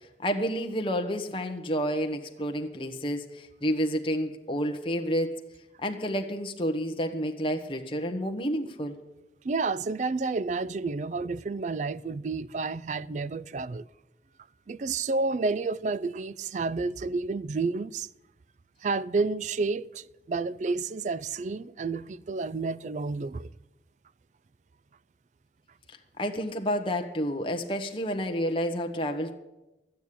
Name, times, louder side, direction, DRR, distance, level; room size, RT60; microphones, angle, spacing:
voice 1, 0.2-5.4 5.8-9.0 26.2-29.3, equal, 30° left, 1.1 m, -30 dB
voice 2, 9.4-13.9 14.7-18.1 18.8-23.5, right 3 dB, 40° right, 0.4 m, -30 dB
12.5 x 9.3 x 8.5 m
head